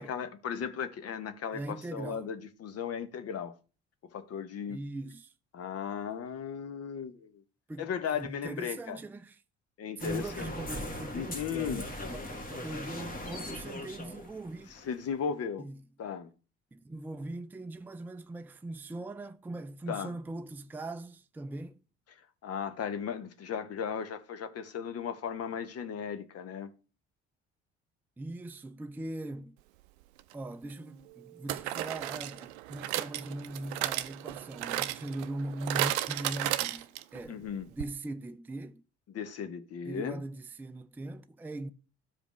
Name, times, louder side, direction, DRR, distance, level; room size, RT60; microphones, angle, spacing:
voice 1, 0.0-3.5 4.1-4.8 5.5-7.3 7.8-9.0 9.8-10.5 11.1-11.8 14.7-15.7 16.0-16.3 19.9-20.1 22.4-26.7 37.3-37.7 39.1-40.2, left 7 dB, 45° left, 0.9 m, -36 dB
voice 2, 1.5-2.3 4.7-5.3 7.7-7.9 8.2-9.4 10.0-11.9 12.1-14.7 15.6-15.8 16.7-21.8 28.2-29.6 30.3-37.4 37.7-38.8 39.9-41.7, right 2 dB, 5° right, 0.4 m, -40 dB
sound 1, 10.0-15.1, left 1 dB, 25° left, 1.6 m, -40 dB
sound 2, 30.2-30.3 31.5-37.2 37.5-37.6 37.8-37.9, right 15 dB, 75° right, 0.5 m, -34 dB
12.5 x 5.0 x 3.1 m
figure-of-eight pair, 50°, 34 cm